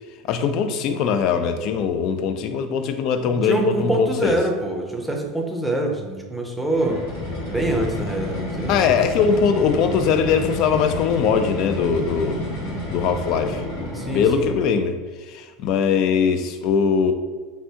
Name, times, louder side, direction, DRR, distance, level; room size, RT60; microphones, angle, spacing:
voice 1, 0.3-4.4 8.7-12.5 12.9-13.6 14.1-15.0 15.3-17.1, left 6 dB, 55° left, 8 dB, 0.3 m, -21 dB
voice 2, 3.2-7.0 7.5-8.8 13.9-14.5, right 1 dB, ahead, 1 dB, 0.6 m, -25 dB
sound 1, 6.7-14.7, left 1 dB, 85° left, 1.1 m, -30 dB
3.3 x 2.6 x 2.8 m, 1.4 s
supercardioid pair, 110°, 0 cm